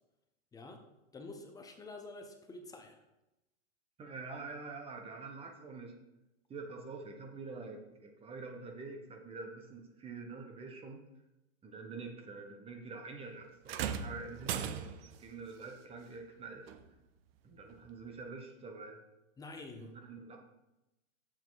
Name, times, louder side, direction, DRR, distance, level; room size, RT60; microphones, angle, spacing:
voice 1, 0.5-0.8 1.1-3.0 19.4-19.9, left 3 dB, 10° left, 4 dB, 0.6 m, -48 dB
voice 2, 4.0-6.0 6.5-11.0 11.6-16.7 17.4-19.0 19.8-20.4, right 4 dB, 15° right, 3 dB, 1.0 m, -46 dB
sound 1, 13.7-15.2 16.7-16.8 17.7-17.8, right 8 dB, 50° right, 0.7 m, -38 dB
7.2 x 7.0 x 4.0 m, 0.94 s
hypercardioid pair, 135°, 38 cm